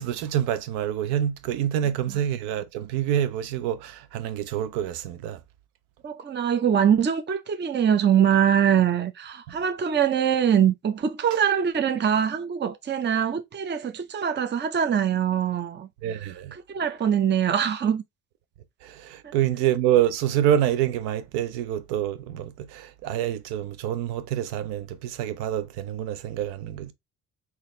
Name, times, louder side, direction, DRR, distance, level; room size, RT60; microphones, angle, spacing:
voice 1, 0.0-5.4 9.5-9.6 16.0-16.5 18.8-26.9, right 11 dB, 80° right, 0.7 m, -27 dB
voice 2, 6.0-15.9 16.5-18.0 19.2-19.3, right 8 dB, 25° right, 0.7 m, -23 dB
4.1 x 2.8 x 3.2 m
supercardioid pair, 65°, 40 cm